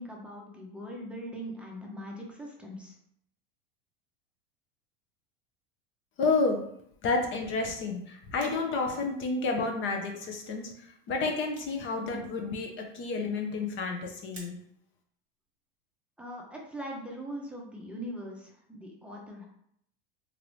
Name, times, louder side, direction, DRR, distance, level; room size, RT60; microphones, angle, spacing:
voice 1, 0.0-3.0 16.2-19.4, equal, 5° right, -2 dB, 0.6 m, -41 dB
voice 2, 6.2-6.6 7.0-14.6, left 3 dB, 40° left, 3 dB, 0.6 m, -30 dB
sound 1, 8.4-8.9 9.7-9.8 10.4-10.5 10.7-10.8 11.0-12.0 12.3-12.4 13.7-13.9 14.3-14.9 15.5-15.6, right 2 dB, 25° right, 1.1 m, -52 dB
2.8 x 2.6 x 3.0 m, 0.71 s
hypercardioid pair, 100°, 29 cm